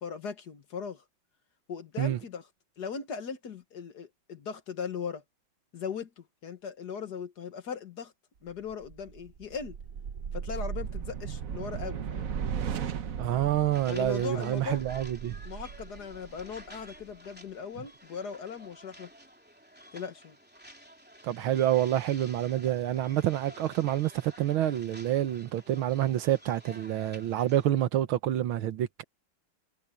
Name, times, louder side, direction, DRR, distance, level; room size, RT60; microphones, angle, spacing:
voice 1, 0.0-1.0 1.7-2.5 2.8-5.2 5.7-8.1 8.4-9.8 10.3-12.3 13.9-14.8 15.4-19.1 19.9-20.4, left 6 dB, 55° left, 1.8 m, -39 dB
sound 1, 8.7-17.1, right 7 dB, 50° right, 1.2 m, -37 dB
voice 2, 13.2-15.4 21.2-29.0, right 12 dB, 80° right, 1.8 m, -28 dB
sound 2, 13.7-27.7, equal, 5° right, 2.9 m, -51 dB
omnidirectional pair, 2.2 m